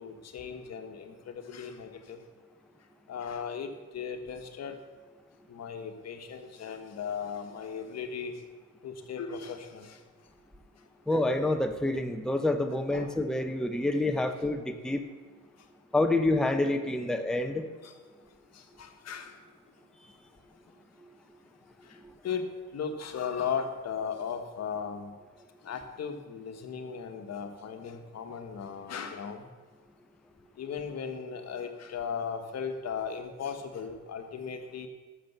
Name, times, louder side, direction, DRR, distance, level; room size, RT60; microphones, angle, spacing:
voice 1, 0.0-2.2 3.1-4.8 5.5-8.4 8.8-10.0 12.9-13.1 17.8-17.9 18.5-19.3 21.9-22.0 22.2-25.1 25.6-29.5 30.6-34.9, left 6 dB, 60° left, 6 dB, 1.4 m, -37 dB
voice 2, 11.1-15.0 15.9-17.7, left 2 dB, ahead, 6 dB, 0.8 m, -27 dB
12.0 x 6.8 x 6.8 m, 1.4 s
cardioid pair, 90°, 30 cm